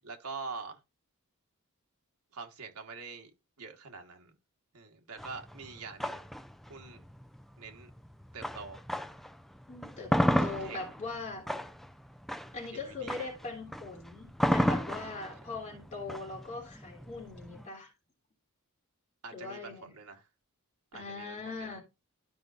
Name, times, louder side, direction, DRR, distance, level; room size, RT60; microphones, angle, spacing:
voice 1, 0.0-0.8 2.3-3.3 3.6-4.3 4.7-6.2 6.7-7.0 7.6-7.9 8.3-8.8 10.4-10.8 12.9-13.2 19.2-20.2 20.9-21.8, right 4 dB, 85° right, 1.5 m, -45 dB
sound 1, 5.2-9.3 9.7-17.7, equal, ahead, 0.3 m, -32 dB
voice 2, 9.7-10.1 10.4-11.5 12.5-17.9 19.3-19.9 20.9-21.8, left 3 dB, 35° left, 3.2 m, -41 dB
13.0 x 5.2 x 2.5 m
head